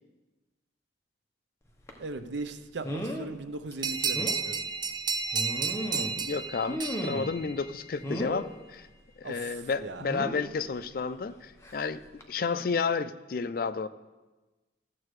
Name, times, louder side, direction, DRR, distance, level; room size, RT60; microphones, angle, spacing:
sound 1, 1.9-2.0 2.8-3.3 3.7-3.8 4.1-4.4 5.3-6.2 6.7-7.4 8.0-8.5 10.0-10.5 11.6-11.8 12.2-12.3, equal, 15° left, 0.9 m, -35 dB
voice 1, 2.0-4.6 9.2-10.1, right 3 dB, 80° right, 10 dB, 0.6 m, -38 dB
sound 2, 3.8-8.1, right 5 dB, 25° right, 0.4 m, -32 dB
voice 2, 5.9-8.9 9.2-12.0 12.3-13.9, left 5 dB, 50° left, 13 dB, 0.4 m, -31 dB
14.0 x 7.5 x 3.2 m, 1.2 s
head